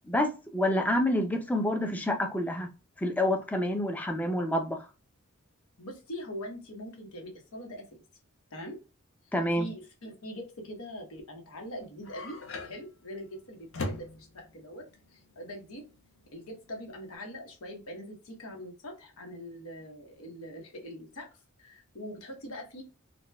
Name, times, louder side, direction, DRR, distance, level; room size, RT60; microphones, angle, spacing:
voice 1, 0.0-2.7 3.0-4.9 9.3-9.7, left 1 dB, 5° left, 0.4 m, -28 dB
voice 2, 5.8-8.0 8.5-8.8 9.2-12.4 12.6-15.9 16.3-21.3 21.6-22.8, equal, 85° left, 1.0 m, -43 dB
sound 1, 11.6-17.1, left 2 dB, 65° left, 0.6 m, -41 dB
4.0 x 2.2 x 2.2 m
head